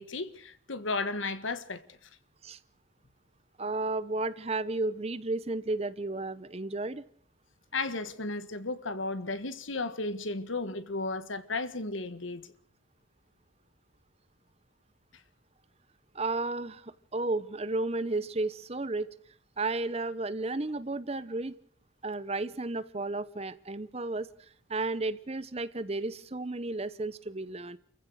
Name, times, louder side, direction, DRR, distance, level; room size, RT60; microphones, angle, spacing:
voice 1, 0.0-2.0 7.7-12.5, left 3 dB, 75° left, 1.7 m, -34 dB
voice 2, 3.6-7.0 16.1-19.1 19.6-21.6 22.0-27.8, right 2 dB, 30° right, 0.9 m, -33 dB
28.5 x 15.5 x 6.4 m
head